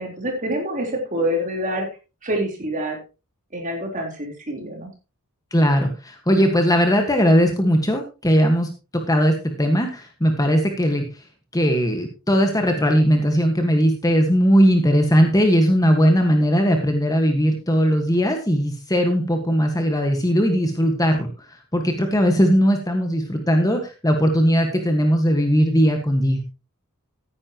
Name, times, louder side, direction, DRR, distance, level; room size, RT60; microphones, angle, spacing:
voice 1, 0.0-1.9 2.2-3.0 3.5-4.9, equal, 35° right, 1 dB, 3.9 m, -26 dB
voice 2, 5.5-11.0 11.5-21.3 21.7-26.4, equal, 15° left, 4 dB, 1.6 m, -19 dB
14.5 x 9.9 x 3.0 m, 0.30 s
head